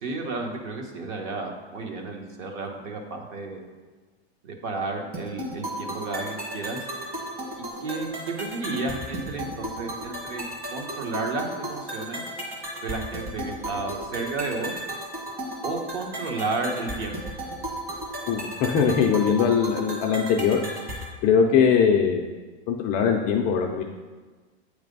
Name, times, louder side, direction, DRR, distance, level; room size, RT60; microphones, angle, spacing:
voice 1, 0.0-3.6 4.4-6.8 7.8-10.4 10.7-12.2 12.8-14.7 15.6-17.2, right 3 dB, 45° right, 2 dB, 1.2 m, -32 dB
sound 1, 5.1-21.1, right 1 dB, 25° right, 1.5 m, -35 dB
voice 2, 18.3-20.6 21.2-22.2 22.7-23.8, left 6 dB, 25° left, 1 dB, 0.3 m, -21 dB
8.4 x 3.3 x 5.3 m, 1.4 s
supercardioid pair, 145°, 33 cm